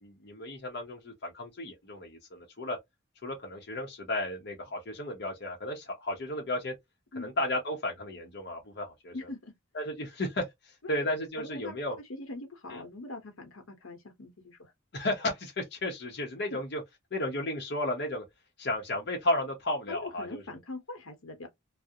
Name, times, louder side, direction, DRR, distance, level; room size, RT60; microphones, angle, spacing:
voice 1, 0.0-2.8 3.2-6.7 7.2-9.1 9.7-12.0 12.7-12.8 14.9-16.8 17.1-18.2 18.6-20.4, left 1 dB, 50° left, 0.7 m, -33 dB
voice 2, 9.1-9.5 10.8-11.0 11.4-11.8 12.1-14.7 16.5-16.6 19.9-21.5, left 2 dB, 85° left, 0.8 m, -42 dB
2.4 x 2.0 x 2.6 m
head